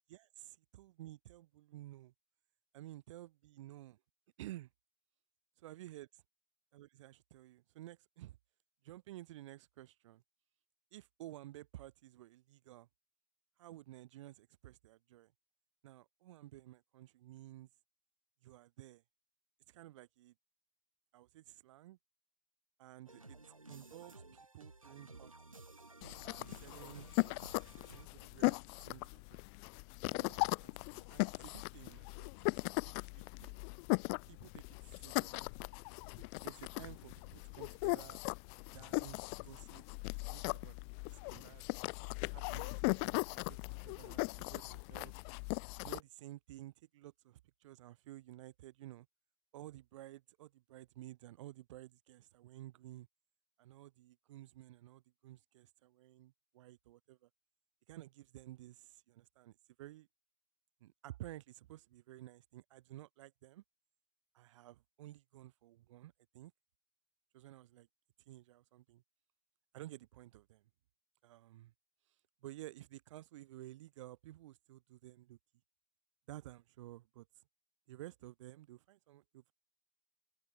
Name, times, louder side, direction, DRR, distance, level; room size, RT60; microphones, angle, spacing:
voice 1, 0.1-2.1 2.7-4.0 4.4-4.7 5.6-6.1 6.7-8.4 8.8-10.2 10.9-12.9 13.6-15.3 15.8-17.7 18.4-19.0 19.7-20.3 21.1-22.0 22.8-23.4 23.7-25.6 26.2-27.5 27.9-29.2 30.1-32.5 32.8-32.9 33.4-33.6 34.2-35.7 36.2-38.2 38.7-39.8 40.2-40.7 41.1-41.6 42.3-43.6 43.8-45.1 45.8-49.1 49.5-53.1 53.6-57.3 57.9-60.1 60.8-63.6 64.3-66.5 67.3-67.9 68.3-69.0 69.7-70.6 71.2-71.7 72.1-75.4 76.3-77.4 77.9-79.5, right 15 dB, 65° right, 2.9 m, -53 dB
sound 1, 23.1-28.1, right 2 dB, 90° right, 1.5 m, -55 dB
sound 2, 26.0-46.0, left 40 dB or more, 55° left, 0.7 m, -39 dB
open air
figure-of-eight pair, 70°, 17 cm